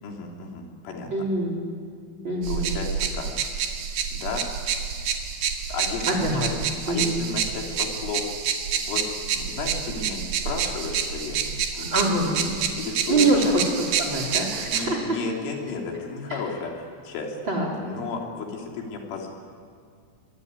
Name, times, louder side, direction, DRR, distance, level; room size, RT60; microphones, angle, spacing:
voice 1, 0.0-1.1 2.5-3.6 4.1-4.7 5.7-6.5 6.9-8.3 8.9-13.3 14.7-17.4 17.8-19.3, left 4 dB, 90° left, 1 dB, 5.5 m, -33 dB
voice 2, 1.1-1.6 2.2-2.7 6.1-6.4 6.9-7.2 11.8-12.4 13.1-15.2 16.3-16.4 17.4-17.7, right 2 dB, 25° right, 0 dB, 4.0 m, -24 dB
sound 1, 2.4-14.9, right 7 dB, 65° right, 3.6 m, -28 dB
23.5 x 23.0 x 9.6 m, 2.2 s
omnidirectional pair, 5.5 m